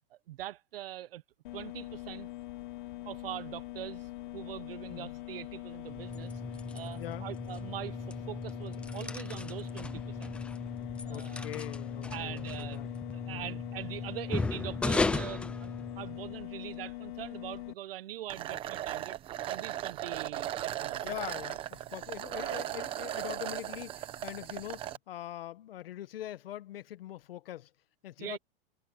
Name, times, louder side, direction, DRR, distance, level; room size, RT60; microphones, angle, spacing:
voice 1, 0.3-1.2 1.5-2.3 3.0-6.4 6.7-10.4 11.0-11.5 12.1-12.8 13.1-19.2 19.5-21.0 28.2-28.4, right 13 dB, 70° right, 1.1 m, -42 dB
sound 1, 1.4-17.7, left 18 dB, 55° left, 2.8 m, -43 dB
sound 2, 5.9-16.4, left 3 dB, 5° left, 0.6 m, -36 dB
voice 2, 7.0-7.3 11.1-12.9 13.3-13.6 21.0-27.7 28.0-28.4, left 13 dB, 70° left, 1.7 m, -43 dB
sound 3, 18.3-25.0, right 12 dB, 20° right, 1.0 m, -37 dB
supercardioid pair, 170°, 30 cm